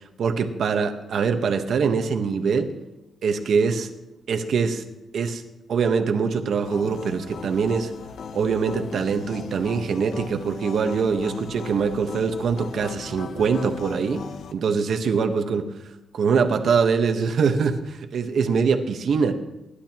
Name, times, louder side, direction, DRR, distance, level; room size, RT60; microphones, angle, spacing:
voice 1, 0.2-2.7 3.2-3.9 4.3-4.8 5.1-5.4 5.7-7.9 8.3-14.2 14.5-15.7 16.1-19.3, right 5 dB, 65° right, 6 dB, 1.3 m, -23 dB
sound 1, 6.6-14.5, left 6 dB, 70° left, 0.9 m, -38 dB
25.0 x 11.5 x 3.0 m, 0.95 s
cardioid pair, 120°, 0 cm